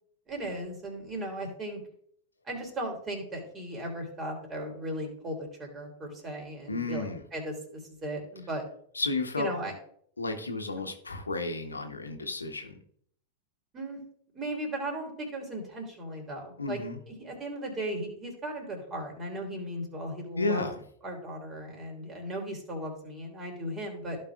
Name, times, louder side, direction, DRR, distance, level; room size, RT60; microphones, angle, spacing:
voice 1, 0.3-1.8 2.4-8.6 9.4-9.7 13.7-14.0 14.3-16.8 17.1-20.7 21.0-24.2, right 1 dB, 25° right, 2 dB, 3.3 m, -37 dB
voice 2, 6.7-7.2 8.9-9.5 10.2-12.8 16.6-17.0 20.4-20.8, left 3 dB, 80° left, 6 dB, 1.1 m, -32 dB
15.5 x 5.3 x 2.4 m, 0.63 s
figure-of-eight pair, 90°, 0 cm